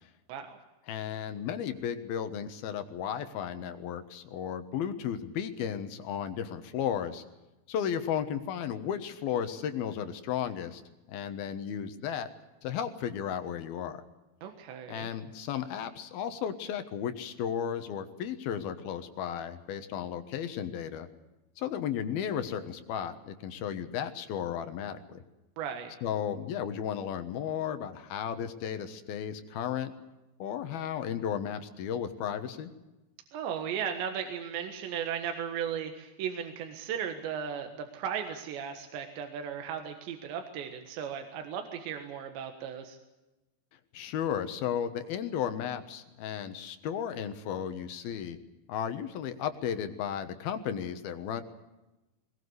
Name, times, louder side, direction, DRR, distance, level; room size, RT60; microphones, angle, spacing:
voice 1, 0.9-7.2 7.7-10.8 11.1-12.3 12.6-14.0 14.9-21.1 21.6-25.2 26.0-29.9 30.4-32.7 43.9-48.4 48.7-51.4, left 9 dB, 65° left, 9 dB, 2.9 m, -34 dB
voice 2, 14.4-15.1 25.6-26.0 33.3-43.0, right 8 dB, 80° right, 5 dB, 3.8 m, -36 dB
22.0 x 20.0 x 8.0 m, 1.0 s
omnidirectional pair, 5.0 m